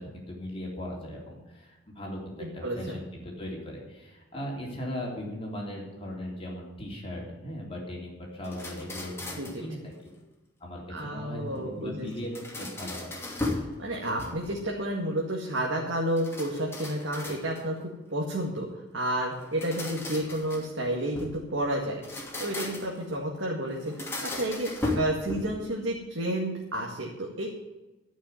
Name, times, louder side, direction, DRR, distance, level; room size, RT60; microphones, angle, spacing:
voice 1, 0.0-9.9 10.6-12.3 12.6-13.1, left 1 dB, 30° left, -2 dB, 3.5 m, -38 dB
voice 2, 2.4-3.0 9.4-9.5 10.9-12.1 13.8-18.7 18.9-22.0 22.4-24.7 24.9-27.5, right 1 dB, 75° right, -2 dB, 2.0 m, -31 dB
sound 1, 8.4-9.7 12.1-13.7 14.1-14.7 16.2-17.8 19.4-21.4 21.9-23.0 23.8-25.7, left 2 dB, 15° left, 2.6 m, -36 dB
12.5 x 6.2 x 9.4 m, 1.1 s
head